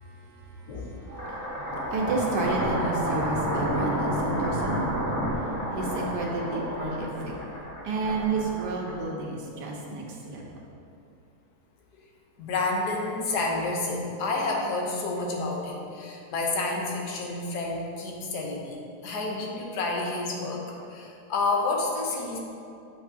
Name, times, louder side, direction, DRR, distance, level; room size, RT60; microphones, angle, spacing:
voice 1, 0.0-4.9 5.4-5.5 5.7-7.3 7.8-10.5, right 3 dB, 80° right, -2 dB, 1.6 m, -31 dB
Earth's Crust Depressing, 1.0-9.3, equal, 10° left, 1.3 m, -30 dB
voice 2, 12.4-18.8 19.0-22.4, left 3 dB, 75° left, -1 dB, 1.5 m, -29 dB
8.2 x 5.8 x 2.7 m, 2.6 s
omnidirectional pair, 1.8 m